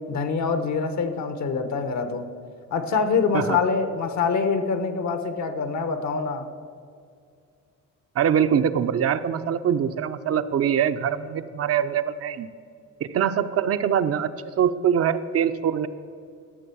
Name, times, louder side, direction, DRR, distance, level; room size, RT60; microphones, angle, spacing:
voice 1, 0.1-2.3 2.7-6.5, left 5 dB, 65° left, 9 dB, 1.1 m, -25 dB
voice 2, 8.2-12.5 13.1-14.3 14.6-15.9, right 8 dB, 50° right, 10 dB, 0.6 m, -23 dB
12.5 x 6.8 x 6.9 m, 2.3 s
cardioid pair, 90°, 30 cm